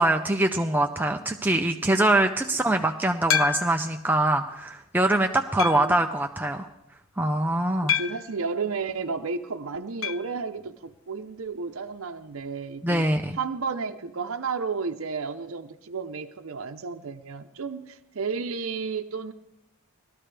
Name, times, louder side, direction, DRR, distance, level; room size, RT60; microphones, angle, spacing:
voice 1, 0.0-6.7 7.2-7.9 12.8-13.4, right 1 dB, 10° right, 4 dB, 0.4 m, -23 dB
sound 1, 3.3-4.0 4.6-4.7 5.6-6.0 7.9-8.4 10.0-10.3 10.6-10.7 10.9-11.0 13.0-13.1, left 8 dB, 70° left, 0.5 m, -28 dB
voice 2, 5.5-6.1 7.8-13.1 13.3-19.3, right 5 dB, 75° right, 6 dB, 0.7 m, -32 dB
19.0 x 13.5 x 3.4 m, 0.87 s
head